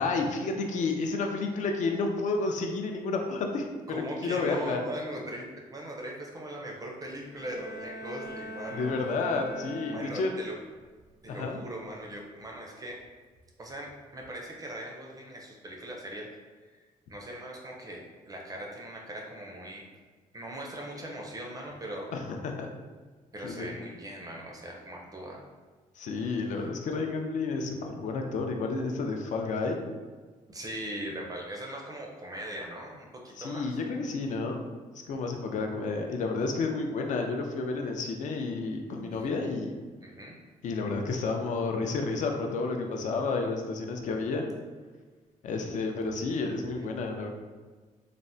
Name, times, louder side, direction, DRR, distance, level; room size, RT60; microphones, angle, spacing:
voice 1, 0.0-3.7 4.2-4.8 8.7-10.3 11.3-11.6 22.1-22.7 23.4-23.7 26.0-29.8 33.4-34.6 35.1-39.8 40.6-44.4 45.4-47.3, left 3 dB, 60° left, 3 dB, 0.4 m, -31 dB
voice 2, 3.9-9.0 9.9-10.5 11.2-13.0 13.6-16.3 16.7-16.8 17.1-19.8 20.3-22.1 23.3-25.4 30.5-33.8 39.1-39.3 40.0-40.3 45.6-45.8, right 1 dB, 25° right, -1 dB, 0.4 m, -40 dB
Bowed string instrument, 7.2-10.6, equal, 20° left, 0.7 m, -42 dB
3.3 x 2.0 x 2.6 m, 1.4 s
cardioid pair, 140°, 14 cm